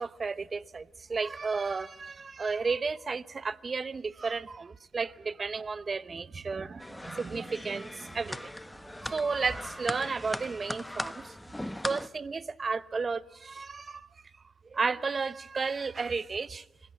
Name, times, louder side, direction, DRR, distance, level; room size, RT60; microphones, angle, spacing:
voice 1, 0.0-8.5 9.0-11.3 11.8-14.1 14.7-16.6, right 4 dB, 45° right, 0.8 m, -33 dB
sound 1, 6.8-12.1, left 1 dB, 10° left, 0.9 m, -39 dB
26.0 x 16.5 x 8.5 m
supercardioid pair, 55°, 0 cm